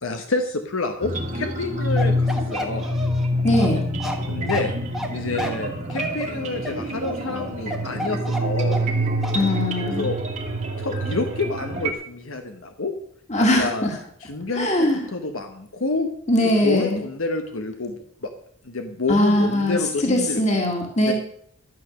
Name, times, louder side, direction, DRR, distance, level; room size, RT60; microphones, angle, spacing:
voice 1, 0.0-2.9 4.3-4.7 5.1-8.8 9.8-10.2 10.8-12.9 13.4-13.9 14.2-16.1 16.4-18.3 18.6-20.6 21.0-21.1, left 3 dB, 75° left, 5 dB, 1.1 m, -28 dB
sound 1, 1.0-11.9, equal, 35° right, 1.8 m, -26 dB
Bark, 2.0-9.0 9.2-9.4, equal, ahead, 1.4 m, -31 dB
voice 2, 3.4-3.8 9.3-10.1 13.3-13.9 14.6-15.0 16.3-17.0 19.1-21.1, left 1 dB, 35° left, 1 dB, 2.1 m, -21 dB
12.5 x 8.2 x 6.5 m, 0.65 s
head